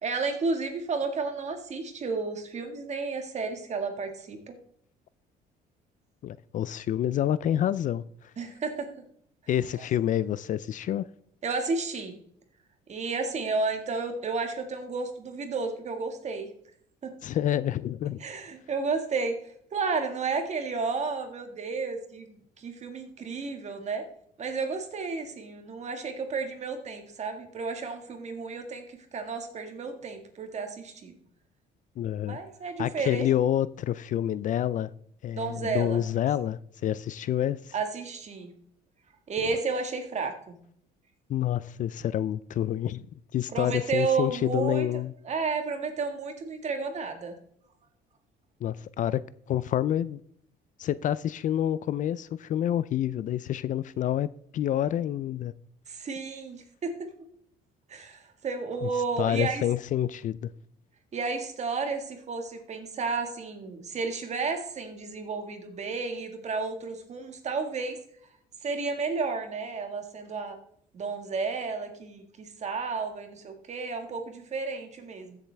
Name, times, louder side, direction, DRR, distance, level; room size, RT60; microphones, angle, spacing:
voice 1, 0.0-4.5 8.4-8.9 11.4-12.2 12.9-16.5 17.0-17.1 18.2-19.4 19.7-24.1 24.4-31.1 32.3-33.3 35.3-36.0 37.7-38.5 39.3-40.6 43.5-44.9 45.2-47.3 55.9-57.1 57.9-59.6 61.1-68.0 68.6-70.6 70.9-75.4, right 4 dB, 40° right, 1.8 m, -32 dB
voice 2, 6.2-8.3 9.5-11.1 17.2-18.2 32.0-32.4 32.8-34.9 35.2-37.7 41.3-43.0 43.3-45.1 48.6-50.2 50.8-54.3 54.5-55.5 58.8-58.9 59.2-60.5, left 11 dB, 50° left, 0.4 m, -28 dB
14.5 x 7.3 x 3.4 m
cardioid pair, 110°, 17 cm